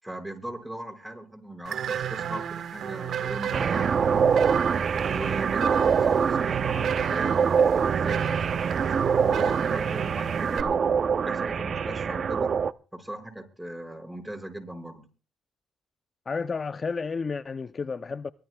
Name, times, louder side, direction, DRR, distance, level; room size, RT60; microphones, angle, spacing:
voice 1, 0.0-4.3 5.1-10.8 11.3-12.5 12.9-15.0, right 1 dB, 5° right, 5.6 m, -39 dB
sound 1, 1.6-10.6, right 9 dB, 65° right, 1.3 m, -33 dB
sound 2, 3.5-12.7, right 6 dB, 50° right, 0.6 m, -24 dB
voice 2, 16.3-18.3, left 4 dB, 35° left, 0.6 m, -31 dB
23.5 x 16.0 x 2.3 m
cardioid pair, 90°, 0 cm